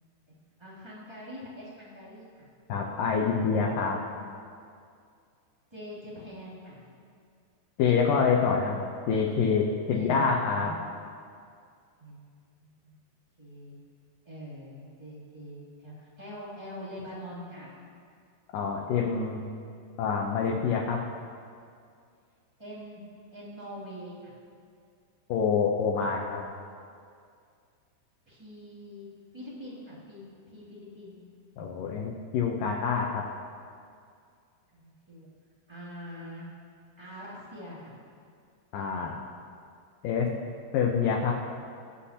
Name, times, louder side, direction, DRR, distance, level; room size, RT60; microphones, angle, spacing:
voice 1, 0.6-2.5 5.7-6.8 9.9-10.2 10.6-10.8 12.0-12.3 12.6-12.9 13.4-13.8 14.2-17.7 22.6-23.0 23.3-24.4 28.3-29.1 29.3-31.2 34.7-35.3 35.7-36.5 37.0-38.0, equal, 10° right, -8 dB, 1.8 m, -44 dB
voice 2, 2.7-4.0 7.8-10.7 18.5-19.4 20.0-21.0 25.3-26.4 31.6-33.2 38.7-39.2 40.0-40.3 40.7-41.4, left 5 dB, 75° left, -1 dB, 2.0 m, -26 dB
23.5 x 8.3 x 2.9 m, 2.3 s
omnidirectional pair, 4.9 m